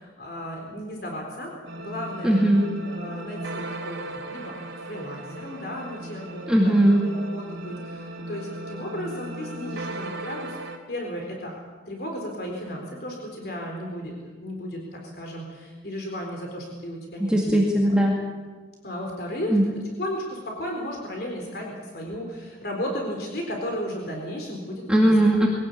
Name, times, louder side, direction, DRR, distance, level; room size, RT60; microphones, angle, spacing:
voice 1, 0.0-1.5 1.8-2.5 2.9-4.5 4.9-10.6 10.9-11.5 11.9-17.6 18.8-19.6 20.0-25.1, equal, 55° left, 1 dB, 4.1 m, -34 dB
sound 1, 1.7-10.8, right 2 dB, 85° right, 3.3 m, -37 dB
voice 2, 2.2-2.6 6.5-7.0 17.2-18.2 19.5-19.6 24.9-25.5, right 1 dB, 5° right, -2 dB, 2.2 m, -19 dB
22.5 x 17.5 x 8.5 m, 1.4 s
head